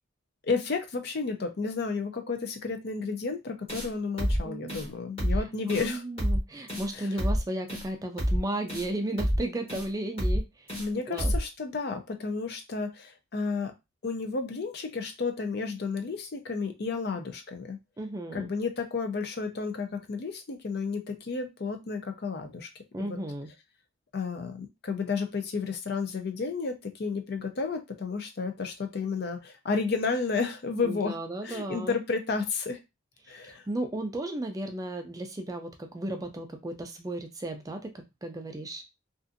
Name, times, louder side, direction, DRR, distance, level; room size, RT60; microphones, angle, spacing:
voice 1, 0.4-6.0 6.9-7.1 10.8-13.7 14.0-17.8 18.3-22.7 23.0-23.2 24.1-31.2 31.4-32.8 33.3-33.6, left 4 dB, 55° left, 6 dB, 0.5 m, -32 dB
sound 1, 3.7-3.9 4.2-4.4 4.7-4.9 5.2-5.4 5.7-5.9 6.2-6.4 6.7-6.9 7.2-7.4 7.7-7.8 8.2-8.4 8.7-8.9 9.2-9.4 9.7-9.9 10.2-10.4 10.7-10.9 11.2-11.4, equal, 30° left, 1.3 m, -27 dB
voice 2, 4.2-4.8 5.7-10.7 11.1-11.3 18.0-18.5 22.9-23.5 30.8-32.0 33.3-38.8, right 1 dB, 15° right, 5 dB, 0.3 m, -34 dB
2.5 x 2.4 x 2.5 m, 0.23 s
head